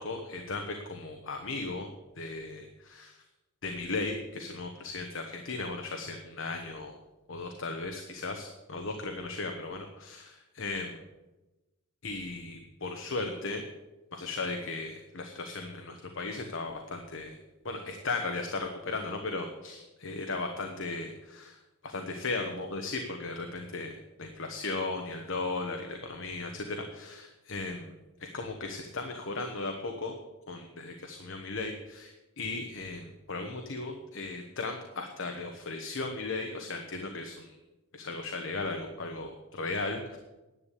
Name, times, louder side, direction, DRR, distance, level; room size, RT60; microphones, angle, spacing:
voice 1, 0.0-1.9 2.2-3.2 3.6-6.9 7.3-11.0 12.0-13.6 14.1-17.4 17.6-30.1 30.5-37.6 37.9-40.2, left 3 dB, 60° left, 4 dB, 1.2 m, -36 dB
10.5 x 8.3 x 8.5 m, 1.1 s
head